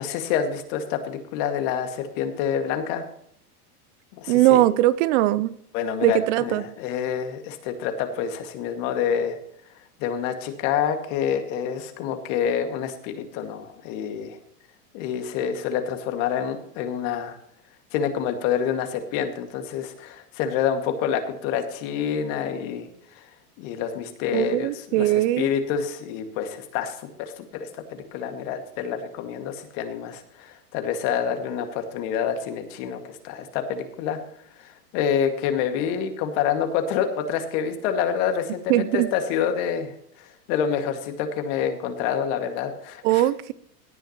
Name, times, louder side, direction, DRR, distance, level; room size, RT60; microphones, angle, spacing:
voice 1, 0.0-3.1 4.1-4.6 5.7-9.4 9.7-14.4 14.9-17.4 17.9-22.9 23.2-23.3 23.6-34.2 34.5-43.3, left 8 dB, 55° left, 6 dB, 2.1 m, -27 dB
voice 2, 4.3-5.5 6.0-6.6 24.3-25.5 38.7-39.1 43.0-43.5, right 15 dB, 50° right, 18 dB, 0.6 m, -20 dB
17.5 x 9.1 x 3.0 m, 0.67 s
hypercardioid pair, 110°, 46 cm